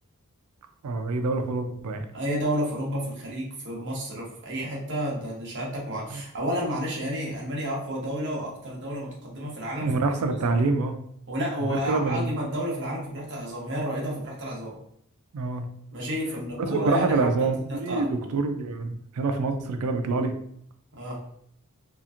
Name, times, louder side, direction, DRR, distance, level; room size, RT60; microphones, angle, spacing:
voice 1, 0.8-2.1 6.1-6.2 9.8-10.9 11.7-12.3 15.3-15.6 16.6-20.3, right 3 dB, 85° right, 7 dB, 0.4 m, -26 dB
voice 2, 2.1-10.0 10.4-10.6 11.3-14.7 15.9-18.1 20.9-21.2, equal, 55° right, -3 dB, 0.9 m, -31 dB
2.9 x 2.4 x 2.4 m, 0.69 s
head